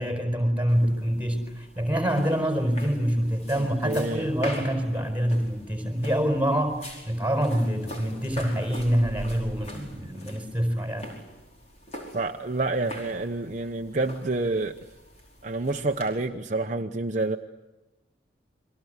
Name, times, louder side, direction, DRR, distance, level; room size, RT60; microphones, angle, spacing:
voice 1, 0.0-6.8 7.1-11.1, equal, 10° right, 4 dB, 4.8 m, -26 dB
sound 1, 0.7-16.3, equal, 35° left, 5.2 m, -43 dB
voice 2, 3.6-4.3 12.1-14.7 15.4-17.4, right 2 dB, 40° right, 4 dB, 0.9 m, -28 dB
30.0 x 23.0 x 8.1 m, 1.1 s
head